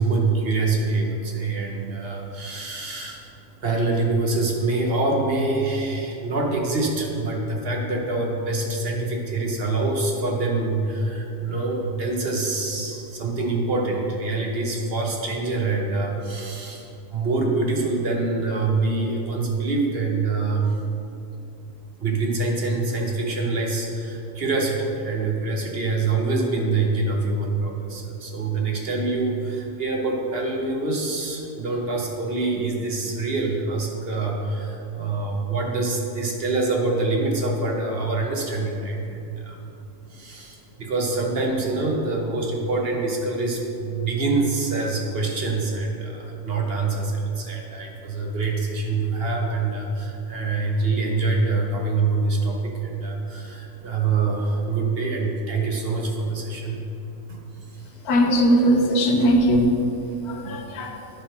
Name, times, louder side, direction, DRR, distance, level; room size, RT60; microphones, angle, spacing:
voice 1, 0.0-3.3 3.6-20.7 22.0-39.7 40.1-56.8 57.3-57.9 60.4-60.6, right 3 dB, 45° right, 0 dB, 1.0 m, -25 dB
voice 2, 58.0-59.8 60.2-61.1, equal, 90° left, 3 dB, 1.3 m, -19 dB
10.5 x 3.7 x 5.7 m, 2.9 s
omnidirectional pair, 1.6 m